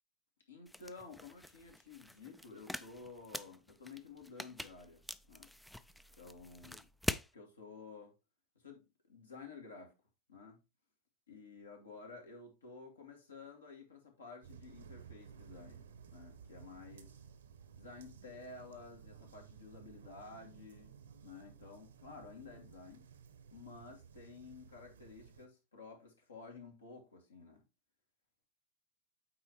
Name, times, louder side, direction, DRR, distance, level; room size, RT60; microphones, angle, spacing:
voice 1, 0.5-5.5 6.2-6.9 7.3-8.1 8.6-8.8 9.1-9.9 10.3-10.6 11.3-17.2 17.8-23.1 23.5-27.6, left 4 dB, 70° left, 2.3 m, -53 dB
sound 1, 0.7-7.3, left 1 dB, 5° left, 0.3 m, -44 dB
sound 2, 14.4-25.5, right 7 dB, 65° right, 0.9 m, -56 dB
8.6 x 4.2 x 3.1 m
figure-of-eight pair, 90°, 0 cm